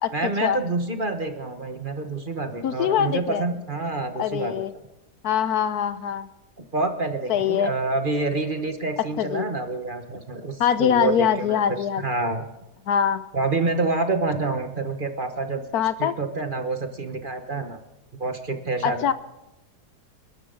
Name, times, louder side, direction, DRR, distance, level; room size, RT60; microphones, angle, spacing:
voice 1, 0.1-4.6 6.7-11.6 12.0-12.5 13.3-15.7 16.0-17.8 18.2-19.1, right 3 dB, 35° right, 6 dB, 1.3 m, -27 dB
voice 2, 2.6-3.4 4.2-4.7 5.2-6.3 7.3-7.7 9.2-9.5 10.6-12.0 12.9-13.2 15.7-16.1 18.8-19.1, left 9 dB, 70° left, 13 dB, 1.2 m, -23 dB
29.0 x 12.0 x 3.9 m, 0.98 s
omnidirectional pair, 1.7 m